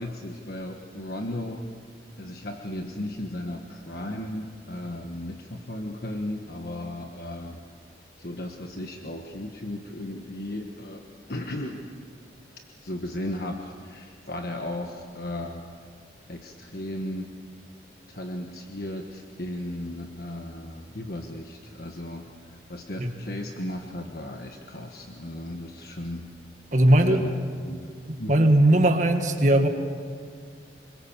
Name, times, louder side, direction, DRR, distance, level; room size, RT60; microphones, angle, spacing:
voice 1, 0.0-1.6 2.2-7.6 8.2-11.0 11.3-11.8 12.8-15.6 16.3-17.3 18.1-26.3 27.0-27.3 27.7-27.9 28.2-28.3, left 1 dB, 55° left, 3 dB, 1.4 m, -35 dB
voice 2, 26.7-27.3 28.1-29.7, right 1 dB, 45° right, 5 dB, 1.9 m, -19 dB
26.0 x 23.0 x 7.4 m, 2.1 s
head